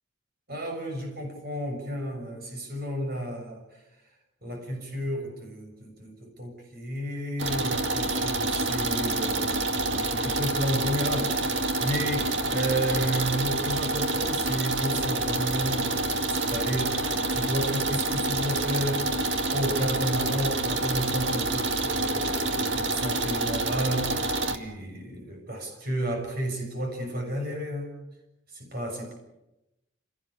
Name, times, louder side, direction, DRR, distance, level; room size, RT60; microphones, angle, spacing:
voice 1, 0.5-3.8 4.4-28.0 28.5-29.1, equal, 50° right, 3 dB, 6.7 m, -32 dB
sound 1, 7.4-24.6, right 2 dB, 70° right, 2.0 m, -27 dB
29.0 x 18.0 x 8.6 m, 0.94 s
head